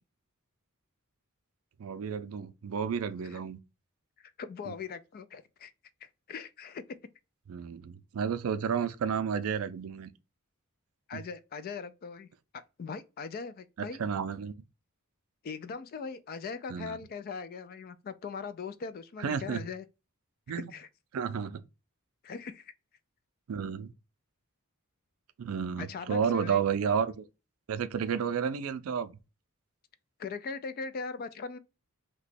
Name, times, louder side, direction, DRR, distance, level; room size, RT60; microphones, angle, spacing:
voice 1, 1.8-3.6 4.7-4.8 7.5-10.1 11.1-11.2 14.0-14.5 16.7-17.0 19.2-19.6 20.5-20.6 21.1-21.6 23.5-23.9 25.4-27.2 27.7-29.1, right 7 dB, 70° right, 0.4 m, -31 dB
voice 2, 4.4-5.7 6.0-7.0 11.1-12.3 12.5-14.0 15.4-19.8 20.7-20.9 22.2-22.7 25.8-26.6 30.2-31.6, left 5 dB, 45° left, 0.3 m, -40 dB
2.9 x 2.2 x 4.0 m
head